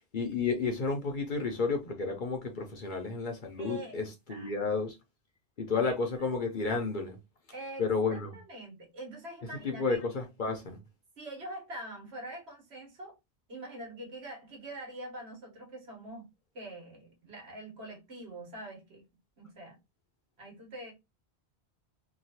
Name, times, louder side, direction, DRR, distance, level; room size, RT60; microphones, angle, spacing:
voice 1, 0.1-5.0 5.6-7.2 7.8-8.3 9.6-10.8, left 4 dB, 50° left, 0.7 m, -31 dB
voice 2, 3.6-4.0 4.3-4.5 5.8-6.3 7.5-7.8 8.1-10.0 11.2-13.2 13.5-16.3 16.5-19.0 19.4-19.8 20.4-20.9, right 1 dB, 65° right, 1.4 m, -44 dB
2.9 x 2.3 x 2.7 m
omnidirectional pair, 1.1 m